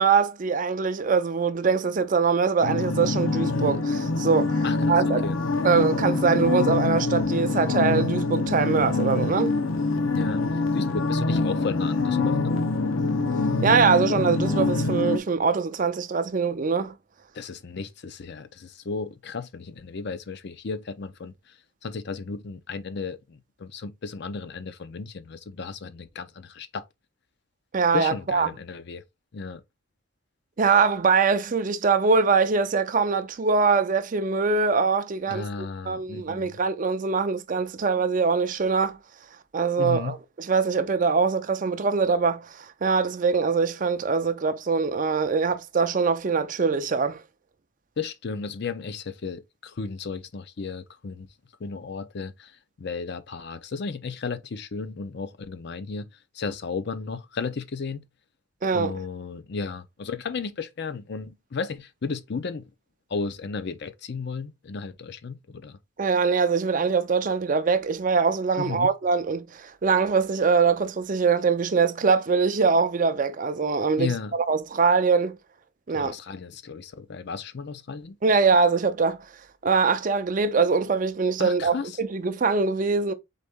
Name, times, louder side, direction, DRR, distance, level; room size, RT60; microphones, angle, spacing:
voice 1, 0.0-5.2 5.6-9.6 13.6-16.9 27.7-28.5 30.6-39.0 39.5-47.2 58.6-58.9 66.0-75.4 75.9-76.1 78.2-79.2 79.6-83.1, right 5 dB, 40° right, 0.5 m, -23 dB
sound 1, 2.6-15.2, left 3 dB, 75° left, 0.8 m, -25 dB
voice 2, 4.6-5.4 10.1-12.6 17.3-26.9 27.9-29.0 29.3-29.6 35.3-36.6 39.8-40.2 48.0-51.3 51.6-56.1 56.3-58.0 58.7-62.7 63.1-65.8 68.6-68.9 74.0-74.3 75.9-78.2 81.4-82.0, left 4 dB, 55° left, 0.5 m, -34 dB
4.0 x 3.7 x 3.4 m
head